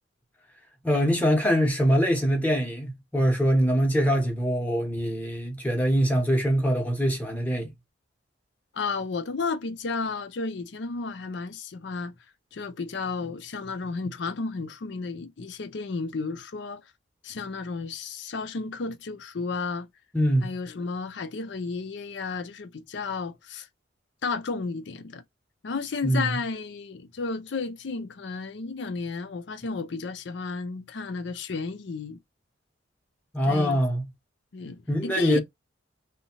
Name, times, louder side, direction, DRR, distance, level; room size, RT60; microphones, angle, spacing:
voice 1, 0.8-7.7 20.1-20.5 26.0-26.4 33.3-34.1 34.9-35.4, equal, 10° left, 0.8 m, -23 dB
voice 2, 8.7-12.1 12.5-16.8 17.2-19.9 20.4-23.7 24.2-25.2 25.6-32.2 33.5-33.8 34.5-35.4, left 4 dB, 65° left, 0.5 m, -33 dB
2.8 x 2.1 x 2.9 m
head